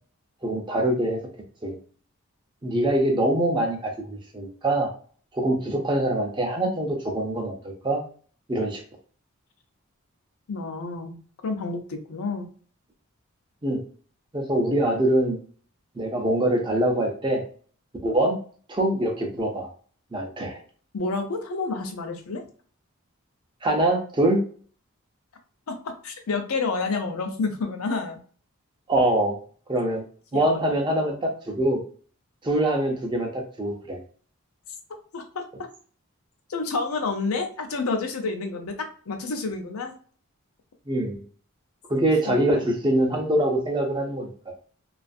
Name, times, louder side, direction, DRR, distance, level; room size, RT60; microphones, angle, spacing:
voice 1, 0.4-1.2 1.6-1.8 2.6-4.9 5.3-8.0 8.5-8.8 13.6-13.8 14.3-15.4 16.0-17.4 18.0-18.4 18.7-19.7 20.1-20.6 23.6-24.4 28.9-29.4 29.7-30.0 30.3-31.8 32.4-34.0 40.9-41.1 41.9-44.3, right 1 dB, 20° right, 1 dB, 0.5 m, -24 dB
voice 2, 10.5-11.2 11.4-12.5 20.9-22.4 25.7-28.2 30.3-30.7 35.1-35.4 36.5-38.8 39.1-40.0 42.3-42.6, left 3 dB, 80° left, 5 dB, 0.5 m, -29 dB
2.4 x 2.4 x 2.5 m, 0.43 s
head